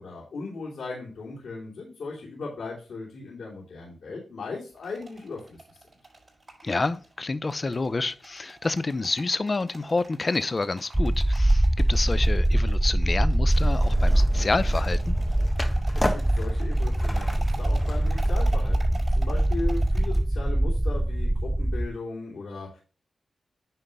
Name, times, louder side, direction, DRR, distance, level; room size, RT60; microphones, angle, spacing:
voice 1, 0.0-5.6 15.9-22.8, left 3 dB, 80° left, 3.1 m, -37 dB
sound 1, 4.7-20.2, right 3 dB, 35° right, 5.2 m, -46 dB
voice 2, 6.6-15.1, left 3 dB, 40° left, 0.6 m, -28 dB
sound 2, 10.9-21.9, right 1 dB, 15° right, 0.6 m, -23 dB
Skateboard, 13.5-18.7, left 1 dB, 15° left, 1.6 m, -36 dB
10.0 x 3.7 x 5.3 m
cardioid pair, 50°, 0 cm